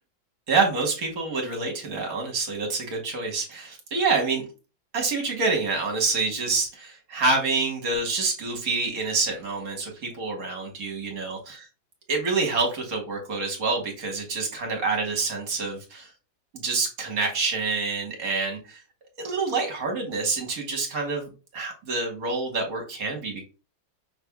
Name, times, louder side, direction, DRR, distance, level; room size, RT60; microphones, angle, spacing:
voice 1, 0.5-4.5 4.9-11.7 12.1-16.1 16.5-18.8 19.2-23.4, right 4 dB, 50° right, 2 dB, 1.4 m, -27 dB
5.8 x 3.3 x 2.3 m, 0.32 s
omnidirectional pair, 2.3 m